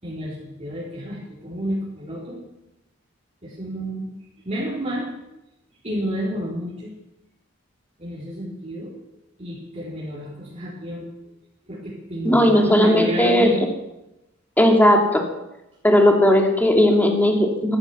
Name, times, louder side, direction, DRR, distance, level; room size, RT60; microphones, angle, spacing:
voice 1, 0.0-2.4 3.4-4.1 4.4-5.1 5.8-7.0 8.0-8.9 9.4-11.1 11.7-13.7, equal, 35° right, -7 dB, 4.1 m, -30 dB
voice 2, 12.2-13.5 14.6-15.2 15.8-17.8, left 1 dB, 10° left, 2 dB, 2.5 m, -16 dB
13.5 x 13.5 x 7.2 m, 0.91 s
head